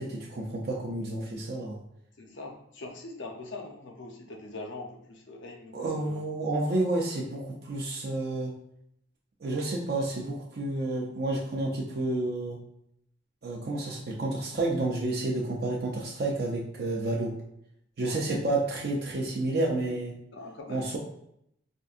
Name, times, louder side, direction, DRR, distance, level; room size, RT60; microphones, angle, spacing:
voice 1, 0.0-1.8 5.7-8.5 9.4-12.6 13.4-17.3 18.0-20.2 20.7-21.0, right 2 dB, 55° right, -3 dB, 0.5 m, -30 dB
voice 2, 2.2-6.2 18.0-18.3 20.3-21.0, left 2 dB, 70° left, 3 dB, 0.6 m, -42 dB
4.4 x 2.6 x 2.4 m, 0.74 s
head